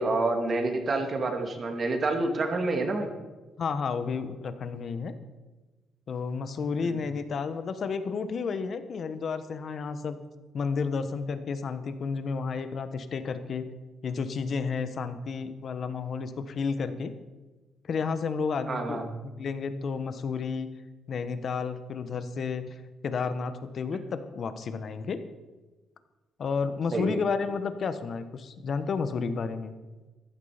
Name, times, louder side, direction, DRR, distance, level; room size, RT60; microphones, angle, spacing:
voice 1, 0.0-3.1 6.8-7.0 18.7-19.0 26.9-27.2, right 2 dB, 40° right, 4 dB, 2.3 m, -28 dB
voice 2, 3.6-5.1 6.1-10.2 10.5-13.6 14.0-17.1 17.8-20.7 21.1-25.2 26.4-29.7, left 5 dB, 55° left, 11 dB, 1.2 m, -31 dB
14.5 x 11.5 x 5.1 m, 1.2 s
cardioid pair, 90°, 0 cm